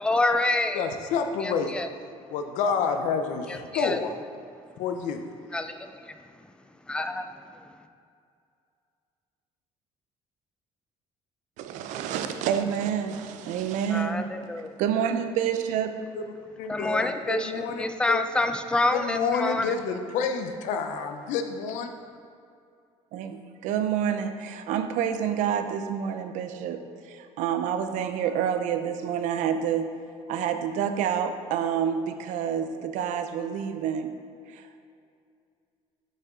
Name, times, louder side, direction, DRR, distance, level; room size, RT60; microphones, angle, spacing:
voice 1, 0.0-0.8 1.4-1.9 3.5-4.0 5.5-6.1 6.9-7.6 13.9-14.7 16.7-19.7, left 2 dB, 10° left, 8 dB, 0.3 m, -27 dB
voice 2, 0.8-1.7 2.3-4.1 4.8-5.2 16.1-16.2 16.6-18.2 18.9-21.9, left 6 dB, 85° left, 6 dB, 0.6 m, -29 dB
voice 3, 11.6-14.3 14.8-16.0 23.1-29.9 30.3-34.1 34.5-34.8, right 8 dB, 90° right, 8 dB, 0.5 m, -28 dB
7.5 x 5.5 x 3.7 m, 2.4 s
cardioid pair, 155°, 12 cm